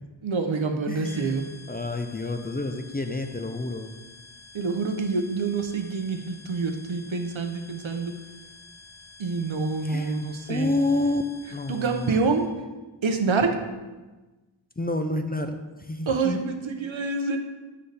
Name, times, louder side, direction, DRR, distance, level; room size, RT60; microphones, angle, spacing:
voice 1, 0.2-1.5 4.5-8.1 9.2-10.7 11.7-12.5 13.0-13.6 16.1-17.4, right 4 dB, 80° right, 6 dB, 0.7 m, -27 dB
voice 2, 0.9-1.4 1.7-3.9 9.8-10.1 10.5-11.2 11.5-12.2 14.8-16.4, left 2 dB, 20° left, 6 dB, 0.4 m, -29 dB
sound 1, 1.0-12.5, left 3 dB, 45° left, 1.4 m, -49 dB
6.6 x 5.3 x 3.3 m, 1.2 s
wide cardioid pair, 45°, 46 cm